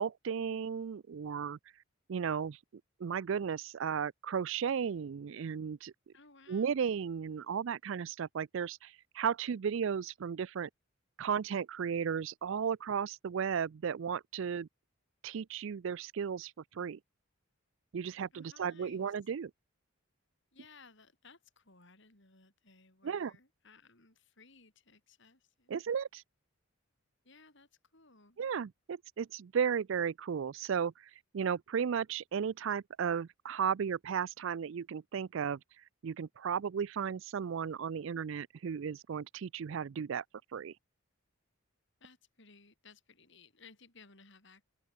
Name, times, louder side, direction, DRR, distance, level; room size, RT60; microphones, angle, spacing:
voice 1, 0.0-1.6 2.1-2.6 3.0-5.9 6.5-10.7 11.2-14.7 15.2-17.0 17.9-19.5 23.0-23.3 25.7-26.2 28.4-35.6 36.0-40.2 40.5-40.7, right 7 dB, 60° right, 0.4 m, -35 dB
voice 2, 6.1-6.9 18.3-19.1 20.5-25.7 27.2-28.4 42.0-44.6, left 4 dB, 55° left, 5.2 m, -60 dB
open air
head